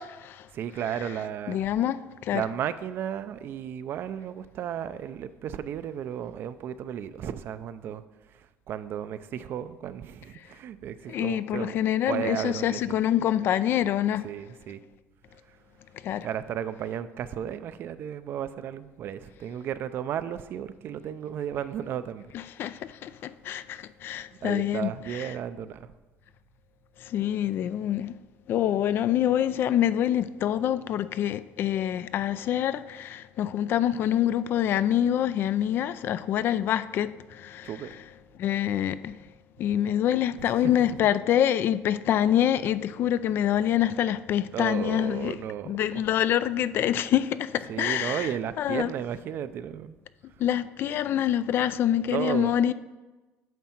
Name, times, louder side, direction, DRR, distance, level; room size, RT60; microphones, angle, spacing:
voice 1, 0.0-0.5 1.5-2.4 11.1-14.3 16.0-16.3 22.3-25.4 27.0-28.2 28.5-38.0 38.4-39.2 39.6-45.4 45.7-48.9 50.4-52.7, left 11 dB, 50° left, 0.4 m, -26 dB
voice 2, 0.5-1.7 2.3-8.0 8.7-11.8 12.1-13.0 14.2-14.8 16.2-22.3 24.4-25.9 37.6-37.9 40.4-40.7 44.5-46.0 47.7-50.0 52.1-52.6, right 9 dB, 50° right, 0.5 m, -34 dB
9.2 x 6.3 x 4.4 m
cardioid pair, 115°, 5 cm